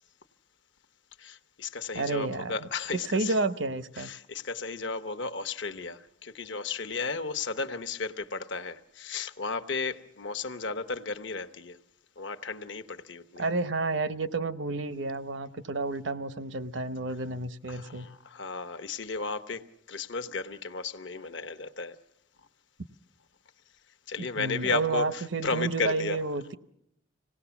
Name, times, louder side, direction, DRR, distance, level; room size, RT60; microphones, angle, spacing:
voice 1, 1.2-3.4 4.0-11.8 12.2-13.4 17.7-22.0 24.1-26.2, left 4 dB, 70° left, 1.1 m, -34 dB
voice 2, 1.9-2.5 2.9-4.1 13.4-18.1 24.2-26.6, right 3 dB, 75° right, 0.9 m, -30 dB
26.5 x 18.0 x 7.1 m
head